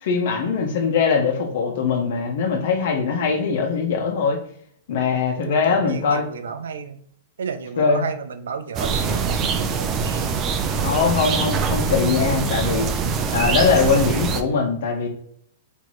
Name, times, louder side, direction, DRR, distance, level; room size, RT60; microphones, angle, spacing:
voice 1, 0.0-4.4 4.9-6.2 7.8-8.1 10.8-12.9 13.3-15.1, left 5 dB, 60° left, 3 dB, 1.1 m, -21 dB
voice 2, 5.4-7.0 7.4-10.3 10.7-10.9, right 6 dB, 80° right, 9 dB, 0.5 m, -32 dB
sound 1, 8.7-14.4, right 5 dB, 25° right, 0.5 m, -23 dB
4.0 x 3.1 x 3.1 m, 0.66 s
hypercardioid pair, 135°, 0 cm